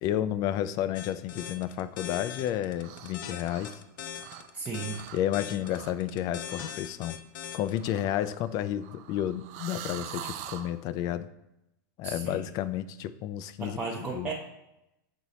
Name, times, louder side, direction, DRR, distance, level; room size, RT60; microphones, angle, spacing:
voice 1, 0.0-3.8 5.1-7.2 7.5-11.3 12.0-14.3, left 11 dB, 35° left, 14 dB, 0.4 m, -31 dB
sound 1, 0.9-7.9, left 9 dB, 70° left, 0.7 m, -40 dB
sound 2, 2.8-3.2 3.4-4.6 4.9-5.2 5.6-6.0 6.5-6.7 7.7-10.7, right 10 dB, 50° right, 0.5 m, -44 dB
voice 2, 4.5-5.1 12.0-12.4 13.6-14.3, right 4 dB, 15° right, -4 dB, 0.7 m, -35 dB
6.4 x 3.9 x 4.2 m, 0.89 s
supercardioid pair, 145°, 11 cm